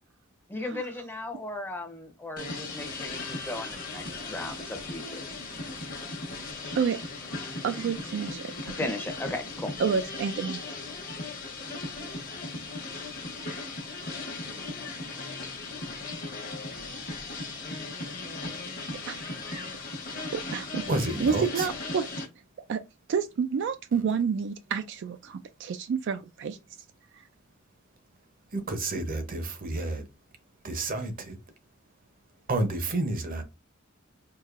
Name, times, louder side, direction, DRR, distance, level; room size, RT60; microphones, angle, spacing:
voice 1, 0.5-5.2 8.8-9.7, left 2 dB, 10° left, 0.6 m, -36 dB
sound 1, 2.4-22.3, left 3 dB, 45° left, 0.9 m, -37 dB
voice 2, 7.6-8.9 9.8-10.6 19.1-19.2 19.5-19.6 20.3-20.8 21.2-22.1 22.7-22.8 23.1-26.6, right 6 dB, 60° right, 0.3 m, -29 dB
voice 3, 20.9-21.7 28.5-30.1 30.6-31.4 32.5-33.4, right 2 dB, 45° right, 0.7 m, -30 dB
4.7 x 2.7 x 2.4 m
head